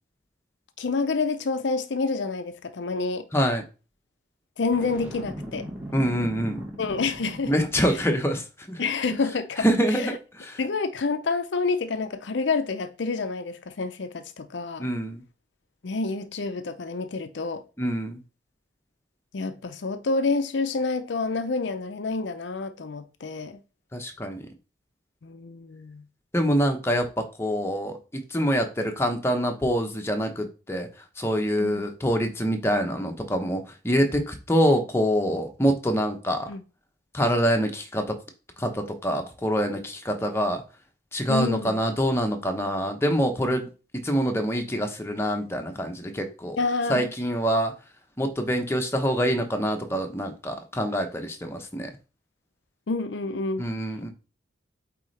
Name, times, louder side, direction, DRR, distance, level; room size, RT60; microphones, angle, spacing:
voice 1, 0.8-3.3 4.6-5.7 6.8-7.5 8.8-10.2 10.6-14.9 15.8-17.6 19.3-23.6 25.2-26.0 31.6-31.8 36.5-36.6 41.3-41.8 46.6-47.1 52.9-53.7, left 4 dB, 75° left, 0.6 m, -28 dB
voice 2, 3.3-3.6 5.9-6.7 7.5-8.8 9.6-10.6 14.8-15.2 17.8-18.2 23.9-24.5 26.3-30.9 31.2-36.5 37.1-38.1 38.6-40.6 41.1-43.7 44.0-46.6 46.9-47.7 48.2-51.9 53.6-54.1, equal, 15° left, 0.9 m, -25 dB
Boom, 4.7-7.9, equal, 10° right, 1.4 m, -38 dB
8.2 x 3.8 x 3.3 m
head